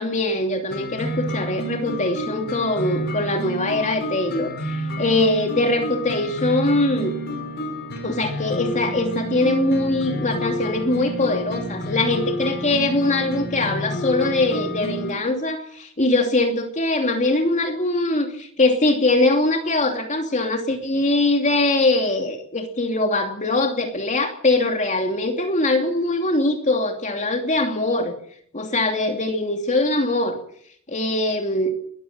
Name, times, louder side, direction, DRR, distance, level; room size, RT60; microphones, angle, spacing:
voice 1, 0.0-7.2 8.0-28.1 28.5-30.4 30.9-31.7, left 2 dB, 35° left, 4 dB, 2.8 m, -22 dB
sound 1, 0.7-15.1, equal, 50° left, 5.7 m, -30 dB
22.0 x 14.5 x 9.0 m, 0.64 s
head